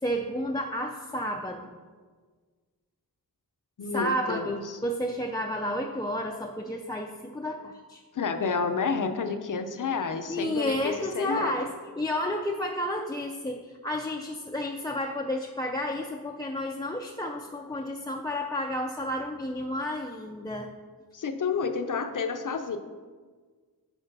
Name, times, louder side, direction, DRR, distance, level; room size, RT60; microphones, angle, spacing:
voice 1, 0.0-1.8 3.9-8.0 10.3-20.7, left 1 dB, 10° left, 0 dB, 0.4 m, -31 dB
voice 2, 3.8-4.8 8.1-11.7 21.1-22.8, left 5 dB, 55° left, 8 dB, 0.7 m, -30 dB
8.0 x 4.9 x 5.3 m, 1.5 s
wide cardioid pair, 130°, 37 cm